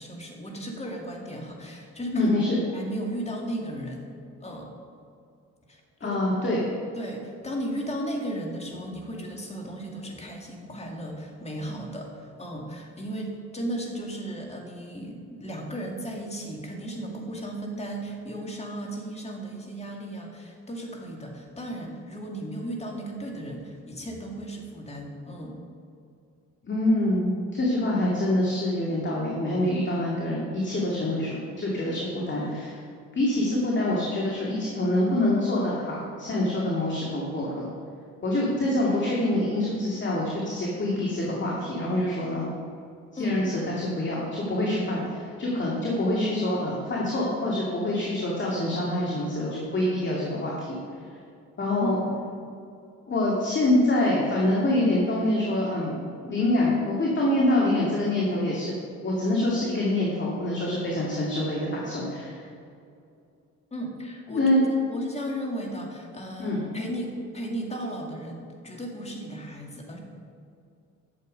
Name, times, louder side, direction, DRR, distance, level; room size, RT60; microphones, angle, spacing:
voice 1, 0.0-2.3 2.7-4.1 4.4-4.7 5.7-6.2 6.9-25.6 43.2-43.4 51.8-52.1 63.7-64.6 64.9-70.0, right 1 dB, 20° left, 0 dB, 2.2 m, -35 dB
voice 2, 2.1-2.6 6.0-6.6 26.6-32.8 33.1-37.7 38.2-42.5 43.1-50.8 51.6-52.0 53.1-56.0 56.3-58.7 59.0-62.4 64.3-64.6 66.4-66.6, left 1 dB, 40° left, -4 dB, 2.3 m, -25 dB
11.0 x 7.5 x 5.2 m, 2.5 s
cardioid pair, 90°, 30 cm